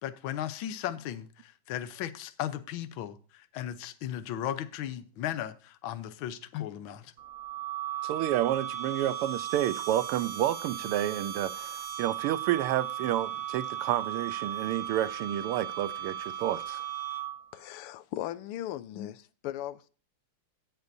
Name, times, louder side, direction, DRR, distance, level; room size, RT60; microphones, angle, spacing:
voice 1, 0.0-7.1 18.9-19.1, left 11 dB, 70° left, 1.5 m, -36 dB
sound 1, 7.2-17.6, right 10 dB, 45° right, 1.3 m, -36 dB
voice 2, 8.0-16.8, right 12 dB, 90° right, 1.6 m, -30 dB
voice 3, 17.5-19.9, left 13 dB, 90° left, 1.6 m, -38 dB
17.0 x 6.8 x 2.6 m
omnidirectional pair, 2.4 m